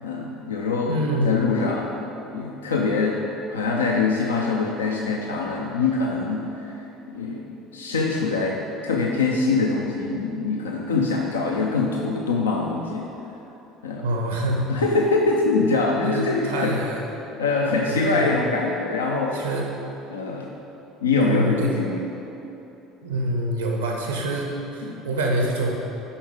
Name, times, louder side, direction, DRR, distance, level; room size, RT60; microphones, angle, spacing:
voice 1, 0.0-1.0 1.2-1.9 2.3-3.2 3.5-13.1 13.8-14.1 14.7-16.8 17.4-19.4 20.1-20.5 21.0-22.1 24.8-25.1, left 3 dB, 75° left, -1 dB, 0.5 m, -24 dB
voice 2, 0.9-1.4 14.0-14.7 16.0-17.0 17.9-18.4 19.3-19.7 21.2-21.7 23.0-25.8, right 1 dB, 80° right, 0 dB, 1.0 m, -26 dB
7.1 x 5.4 x 5.0 m, 3.0 s
figure-of-eight pair, 60°, 0 cm